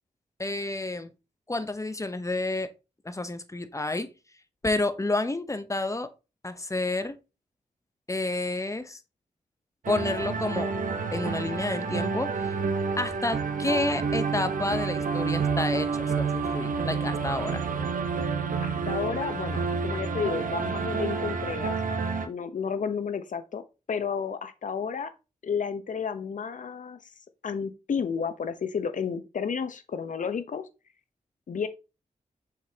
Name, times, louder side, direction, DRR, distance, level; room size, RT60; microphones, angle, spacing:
voice 1, 0.4-1.1 1.5-2.7 3.0-4.1 4.6-6.1 6.4-7.2 8.1-9.0 9.9-10.7 11.1-12.5 13.0-17.6, left 2 dB, 20° left, 0.9 m, -30 dB
sound 1, 9.8-22.3, right 5 dB, 75° right, 0.9 m, -29 dB
voice 2, 18.6-21.8 22.3-25.1 25.4-27.0 27.4-30.7 31.5-31.7, left 6 dB, 70° left, 0.8 m, -32 dB
6.5 x 5.1 x 2.8 m
cardioid pair, 50°, 14 cm